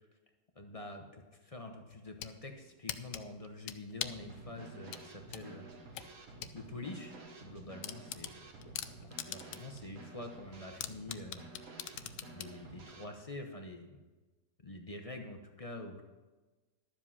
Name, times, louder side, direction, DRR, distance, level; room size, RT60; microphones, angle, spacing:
voice 1, 0.6-5.7 6.2-6.3 6.5-8.5 8.8-11.5 12.3-14.0 14.6-16.0, left 2 dB, 35° left, 3 dB, 0.6 m, -46 dB
sound 1, 1.9-2.4 2.9-4.3 4.9-6.6 6.9-7.0 7.4-7.5 7.8-9.8 10.1-10.2 10.8-12.6, left 12 dB, 80° left, 1.2 m, -41 dB
Drum kit / Snare drum, 4.0-13.1, right 3 dB, 50° right, 1.6 m, -51 dB
12.0 x 7.5 x 5.6 m, 1.2 s
omnidirectional pair, 1.9 m